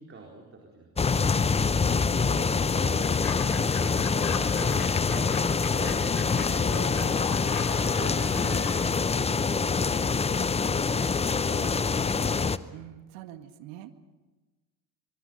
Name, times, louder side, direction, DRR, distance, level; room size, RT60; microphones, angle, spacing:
voice 1, 0.0-1.4 2.2-4.8 5.1-7.4 8.0-12.6, right 3 dB, 25° right, 0 dB, 4.4 m, -44 dB
sound 1, 1.0-12.6, left 5 dB, 15° left, 0.7 m, -25 dB
Fowl / Bird, 3.0-9.2, left 8 dB, 45° left, 3.0 m, -41 dB
sound 2, 5.8-8.9, left 6 dB, 65° left, 5.8 m, -44 dB
voice 2, 12.7-13.9, right 13 dB, 60° right, 9 dB, 2.0 m, -44 dB
24.0 x 24.0 x 5.4 m, 1.2 s
hypercardioid pair, 80°, 50 cm